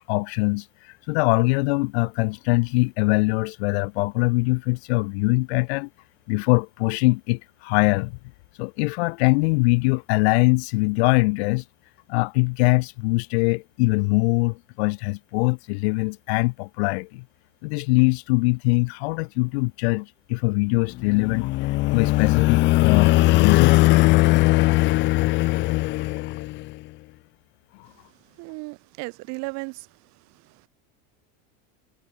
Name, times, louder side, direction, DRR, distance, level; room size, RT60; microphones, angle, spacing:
voice 1, 0.1-0.6 1.1-5.9 6.3-8.2 8.6-11.6 12.1-17.2 17.6-21.5 21.9-23.8, left 27 dB, 65° left, 0.9 m, -22 dB
sound 1, 21.0-26.7, left 19 dB, 35° left, 0.7 m, -19 dB
voice 2, 28.4-29.9 30.3-30.7, right 28 dB, 50° right, 5.6 m, -35 dB
cardioid pair, 170°, 35 cm